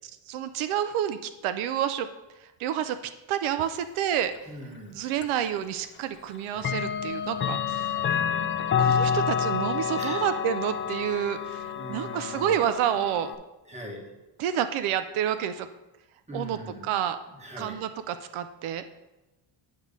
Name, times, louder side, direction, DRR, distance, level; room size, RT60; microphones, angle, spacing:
voice 1, 0.3-2.1 2.6-3.0 3.3-4.5 4.9-7.9 8.8-13.3 14.4-15.7 16.3-17.2 17.6-18.8, right 10 dB, 85° right, 11 dB, 0.5 m, -29 dB
voice 2, 4.5-5.0 8.1-8.6 10.0-10.2 11.7-12.6 13.7-14.0 16.3-16.8 17.4-17.7, equal, 15° right, -1 dB, 1.3 m, -40 dB
Clock, 5.2-5.3 6.6-13.3, left 7 dB, 30° left, 0.3 m, -28 dB
8.5 x 3.1 x 6.5 m, 1.0 s
cardioid pair, 140°, 48 cm